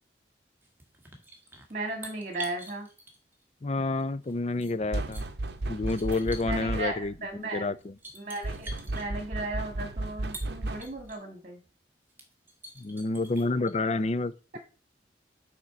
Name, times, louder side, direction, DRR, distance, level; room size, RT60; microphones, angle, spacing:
sound 1, 0.6-3.4 4.0-5.2 5.8-6.6 7.4-7.5 7.8-9.1 10.1-11.2 11.7-11.8 12.1-13.7, right 1 dB, 10° right, 1.6 m, -46 dB
voice 1, 1.7-2.9 6.4-7.7 8.1-11.6, right 2 dB, 40° right, 1.8 m, -36 dB
voice 2, 3.6-5.3 5.7-7.1 7.5-7.9 12.8-14.6, left 3 dB, 35° left, 0.5 m, -29 dB
sound 2, 4.9-7.2 8.4-11.1, right 2 dB, 65° right, 0.8 m, -34 dB
6.5 x 4.4 x 5.9 m
head